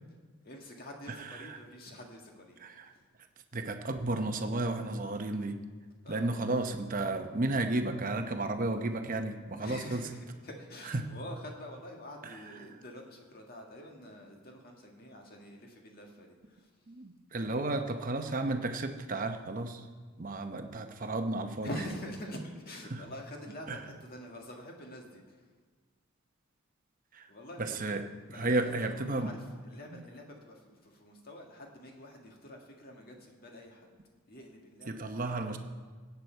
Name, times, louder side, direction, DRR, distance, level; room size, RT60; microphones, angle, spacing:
voice 1, 0.4-2.6 2.8-3.1 6.0-6.3 9.6-16.7 17.3-18.1 21.6-25.5 27.3-27.8 28.3-33.9 34.3-35.6, equal, 45° left, 1 dB, 1.7 m, -46 dB
voice 2, 3.5-5.6 6.1-10.0 10.9-11.1 16.9-19.9 20.2-21.7 22.9-23.0 23.7-23.8 27.1-27.3 27.6-29.3 34.9-35.6, right 2 dB, 40° right, 6 dB, 0.8 m, -33 dB
17.0 x 8.3 x 4.5 m, 1.5 s
head